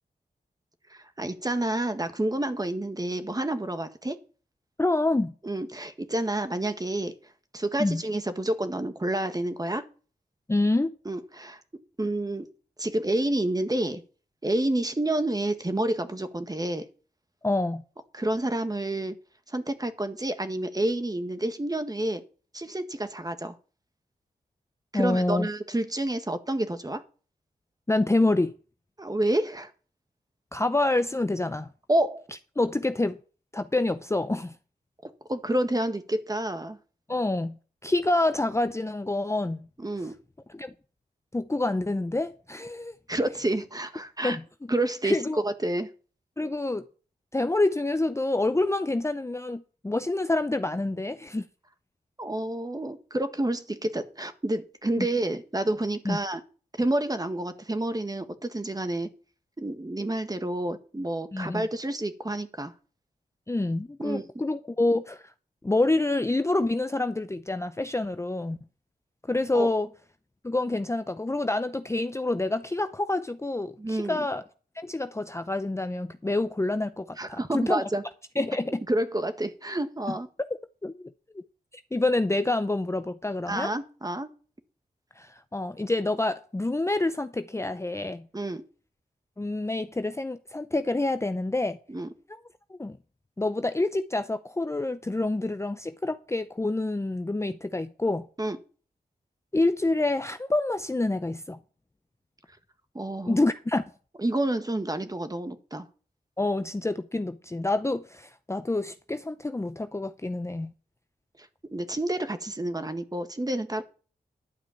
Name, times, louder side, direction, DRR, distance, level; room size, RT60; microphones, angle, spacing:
voice 1, 0.9-4.2 5.4-7.1 7.5-9.9 11.0-11.6 12.0-12.5 12.8-14.0 14.4-16.9 18.1-19.1 19.5-22.2 22.5-23.6 24.9-27.0 29.0-29.7 31.9-32.2 35.3-36.8 39.8-40.1 43.1-44.4 44.7-45.9 52.2-56.4 56.8-59.1 59.6-62.7 64.0-64.2 69.5-69.7 73.8-74.3 77.2-78.0 78.9-80.3 83.5-84.3 88.3-88.6 91.9-92.1 98.4-98.6 102.9-103.4 104.2-105.9 111.4-113.8, right 1 dB, 25° right, 1.6 m, -29 dB
voice 2, 4.8-5.3 7.8-8.0 10.5-10.9 17.4-17.8 24.9-25.5 27.9-28.5 30.5-31.7 32.6-33.2 33.5-34.5 37.1-37.6 37.8-39.6 40.5-40.7 41.3-42.9 44.2-44.4 45.0-45.4 46.4-46.8 47.3-51.5 55.0-55.1 56.1-56.2 61.3-61.7 63.5-65.3 65.6-68.6 69.3-69.9 70.4-74.4 74.8-77.8 78.4-78.8 80.5-81.1 81.3-81.4 81.9-83.7 85.2-88.3 89.4-91.8 92.3-92.4 92.7-93.0 93.4-98.3 99.5-101.6 103.3-103.8 106.4-110.7, left 2 dB, 15° left, 0.6 m, -27 dB
11.5 x 4.9 x 8.5 m
cardioid pair, 55°, 16 cm